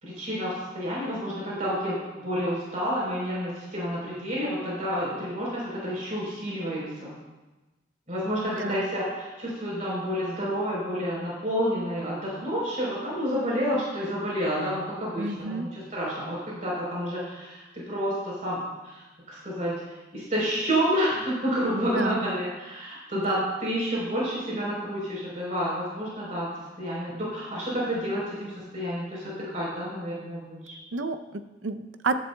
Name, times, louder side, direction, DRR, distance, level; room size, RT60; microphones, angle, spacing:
voice 1, 0.0-7.1 8.1-19.8 20.1-30.8, equal, 40° right, -6 dB, 3.9 m, -29 dB
voice 2, 15.2-15.7 21.7-22.2 23.1-23.5 30.9-32.1, right 3 dB, 75° right, 10 dB, 0.6 m, -31 dB
15.0 x 10.5 x 2.3 m, 1.1 s
head